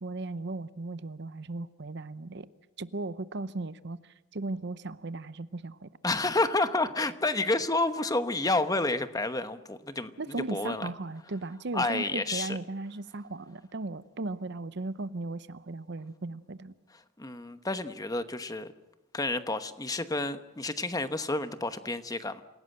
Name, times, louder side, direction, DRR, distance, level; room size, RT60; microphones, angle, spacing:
voice 1, 0.0-2.5 2.8-5.9 10.2-16.7, right 2 dB, 55° right, 0.7 m, -37 dB
voice 2, 6.0-10.9 11.7-12.6 17.2-18.7 19.1-22.4, left 2 dB, 20° left, 1.0 m, -30 dB
27.5 x 17.0 x 7.8 m
head